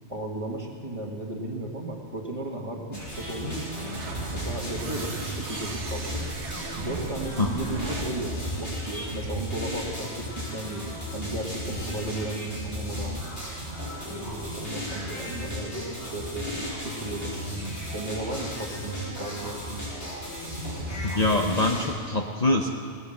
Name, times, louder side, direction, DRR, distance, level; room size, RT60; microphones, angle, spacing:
voice 1, 0.1-3.7 4.3-6.2 6.8-8.3 8.6-13.3 14.0-20.1, right 2 dB, 30° right, 0 dB, 1.7 m, -35 dB
sound 1, 2.9-21.9, equal, 70° left, 5.9 m, -35 dB
sound 2, 3.4-9.6, right 4 dB, 75° right, 1.4 m, -38 dB
voice 2, 21.0-22.7, left 2 dB, 40° left, 2 dB, 0.9 m, -24 dB
19.0 x 9.4 x 7.7 m, 2.1 s
omnidirectional pair, 1.2 m